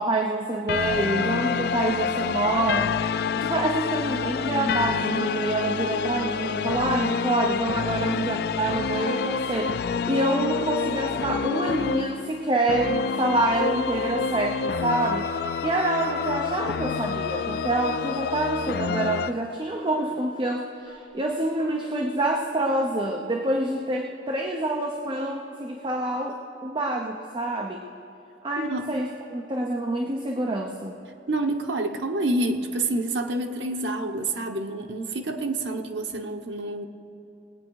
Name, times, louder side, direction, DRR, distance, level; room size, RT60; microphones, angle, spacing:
voice 1, 0.0-3.0 3.4-27.8 28.4-30.9, right 2 dB, 30° right, 2 dB, 0.7 m, -27 dB
sound 1, 0.7-19.3, left 6 dB, 60° left, 0.3 m, -28 dB
sound 2, 14.6-16.5 16.8-17.8 18.7-19.5 19.8-20.6 20.9-21.0 21.2-21.3 21.6-22.6, right 2 dB, 60° right, 3.4 m, -42 dB
voice 2, 28.6-28.9 31.3-36.9, right 2 dB, 90° right, 4 dB, 1.0 m, -28 dB
20.0 x 8.8 x 4.7 m, 2.9 s
head